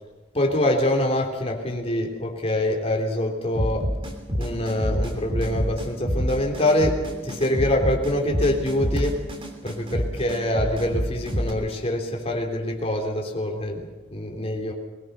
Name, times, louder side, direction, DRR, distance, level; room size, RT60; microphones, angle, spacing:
voice 1, 0.3-3.9 4.3-9.2 9.6-14.7, left 1 dB, 35° left, 1 dB, 3.5 m, -25 dB
sound 1, 3.6-11.5, equal, 30° right, 3.0 m, -27 dB
22.0 x 20.0 x 6.7 m, 1.1 s
head